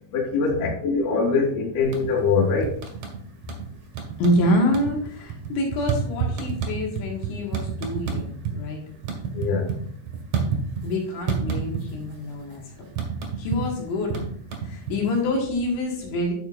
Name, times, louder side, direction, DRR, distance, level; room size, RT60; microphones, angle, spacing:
voice 1, 0.1-2.7 9.3-9.7, left 4 dB, 55° left, -2 dB, 2.7 m, -23 dB
sound 1, 1.8-2.3 2.6-3.7 3.9-4.4 4.7-8.6 8.9-11.0 11.3-12.1 12.4-15.3, right 7 dB, 60° right, 2.0 m, -29 dB
voice 2, 4.2-8.8 10.8-12.6 13.4-14.2 14.6-16.3, left 1 dB, 70° left, -1 dB, 4.1 m, -26 dB
10.5 x 6.9 x 2.5 m, 0.62 s
omnidirectional pair, 5.5 m